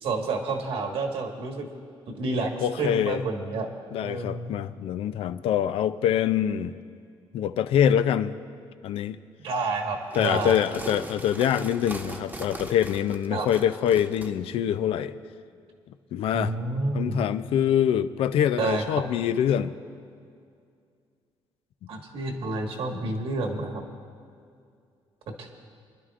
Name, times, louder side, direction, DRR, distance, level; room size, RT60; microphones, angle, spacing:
voice 1, 0.0-1.7 2.1-2.5 2.8-3.7 4.0-4.5 9.4-10.6 13.3-13.5 16.3-17.2 18.6-18.8 21.9-23.8 25.4-25.5, right 3 dB, 70° right, 2 dB, 1.6 m, -29 dB
voice 2, 2.6-3.2 3.9-6.7 7.3-8.3 8.8-9.2 10.2-15.1 16.1-16.5 16.9-19.8 22.9-23.0, left 9 dB, 70° left, 12 dB, 0.5 m, -25 dB
sound 1, 10.0-14.3, right 2 dB, 15° right, 1.0 m, -40 dB
28.0 x 11.0 x 2.5 m, 2.3 s
cardioid pair, 120°, 10 cm